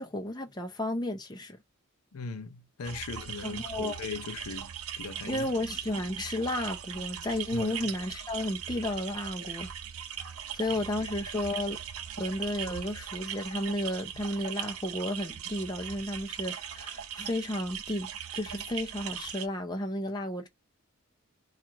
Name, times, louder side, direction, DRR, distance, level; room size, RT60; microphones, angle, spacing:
voice 1, 0.0-1.6 3.4-4.0 5.2-9.7 10.5-11.8 12.2-20.5, left 1 dB, 20° left, 0.6 m, -33 dB
voice 2, 2.1-5.5 7.5-7.9 10.7-11.1, left 4 dB, 85° left, 0.6 m, -39 dB
sound 1, 2.8-19.5, right 9 dB, 75° right, 0.6 m, -39 dB
4.4 x 2.5 x 4.5 m
head